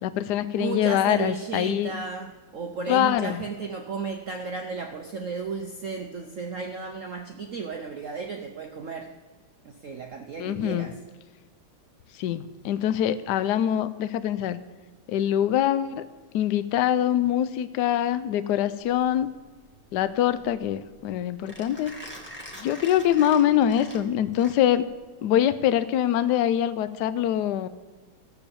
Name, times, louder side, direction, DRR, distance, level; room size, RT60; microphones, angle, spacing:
voice 1, 0.0-1.9 2.9-3.4 10.4-10.9 12.2-14.6 15.1-16.1 16.3-19.3 19.9-21.9 22.6-24.9 25.2-27.7, left 11 dB, 75° left, 14 dB, 1.0 m, -24 dB
voice 2, 0.6-9.1 9.6-10.9, right 5 dB, 75° right, 4 dB, 0.7 m, -34 dB
Mechanisms, 18.8-24.9, equal, 5° left, 1.6 m, -45 dB
15.0 x 7.0 x 7.0 m, 1.3 s
omnidirectional pair, 2.3 m